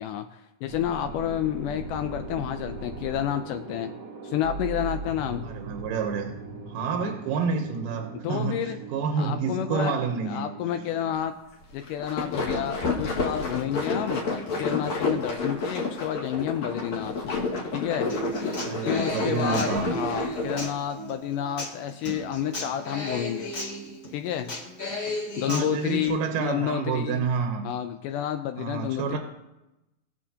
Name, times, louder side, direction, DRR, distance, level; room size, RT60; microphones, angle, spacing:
voice 1, 0.0-3.9 4.2-5.5 8.2-8.8 9.2-9.9 10.2-11.3 11.7-14.2 14.6-17.4 17.7-18.1 18.8-23.5 24.1-24.6 25.4-27.3 27.6-29.2, left 10 dB, 80° left, 7 dB, 2.0 m, -30 dB
sound 1, 0.7-11.2, right 4 dB, 55° right, 1.2 m, -39 dB
voice 2, 5.4-6.3 6.7-10.5 18.6-19.9 25.5-27.6 28.6-29.2, right 5 dB, 80° right, 4 dB, 2.5 m, -29 dB
sound 2, 11.8-20.7, left 3 dB, 60° left, 3.1 m, -30 dB
Human voice / Acoustic guitar, 18.1-26.1, equal, 25° left, 2.1 m, -34 dB
21.0 x 7.1 x 2.8 m, 0.93 s
omnidirectional pair, 4.0 m